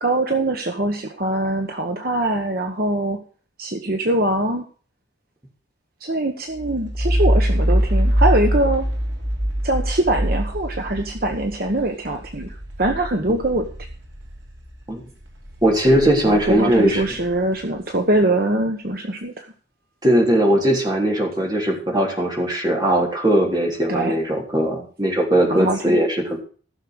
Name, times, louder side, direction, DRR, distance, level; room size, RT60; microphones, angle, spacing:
voice 1, 0.0-3.2 3.6-4.7 6.0-8.9 9.6-13.7 16.2-19.5 23.9-24.1 25.5-26.0, right 1 dB, 50° right, 4 dB, 1.2 m, -23 dB
sound 1, 6.6-14.8 15.2-17.8, equal, 70° right, 2.9 m, -24 dB
voice 2, 15.6-17.0 20.0-26.4, right 1 dB, 20° right, 0 dB, 3.3 m, -19 dB
15.0 x 6.7 x 6.3 m, 0.41 s
head